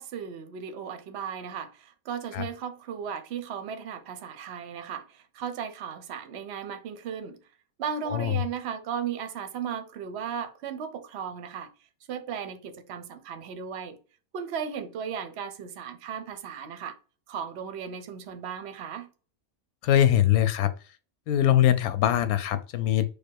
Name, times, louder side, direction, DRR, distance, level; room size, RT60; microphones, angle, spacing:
voice 1, 0.0-7.4 7.8-11.7 12.1-14.0 14.3-17.0 17.3-19.1, right 7 dB, 55° right, 0.8 m, -36 dB
voice 2, 19.8-20.7 21.3-23.1, left 11 dB, 85° left, 1.1 m, -22 dB
4.7 x 2.3 x 4.5 m
omnidirectional pair, 1.5 m